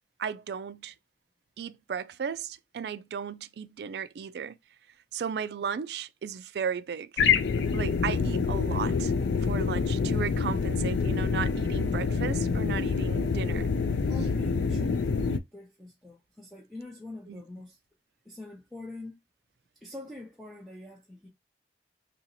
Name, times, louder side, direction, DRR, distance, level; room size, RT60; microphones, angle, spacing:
voice 1, 0.2-0.9 1.6-4.6 5.1-7.1 7.7-9.1 9.4-13.8 17.3-17.4, right 7 dB, 65° right, 0.3 m, -35 dB
sound 1, 7.2-15.4, left 5 dB, 85° left, 0.4 m, -27 dB
voice 2, 14.1-17.8 18.2-19.2 19.8-21.3, left 2 dB, ahead, 0.7 m, -44 dB
2.9 x 2.8 x 3.9 m
head